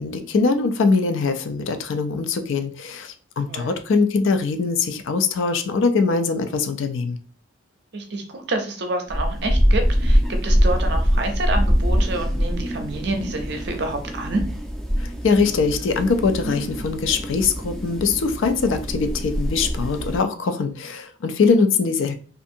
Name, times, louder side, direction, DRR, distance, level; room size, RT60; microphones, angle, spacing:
voice 1, 0.0-7.2 15.0-22.1, left 4 dB, 70° left, 8 dB, 0.4 m, -22 dB
voice 2, 7.9-14.4, right 2 dB, 55° right, 4 dB, 0.5 m, -28 dB
sound 1, 9.1-20.2, equal, ahead, 0.4 m, -23 dB
2.6 x 2.4 x 2.6 m, 0.41 s
head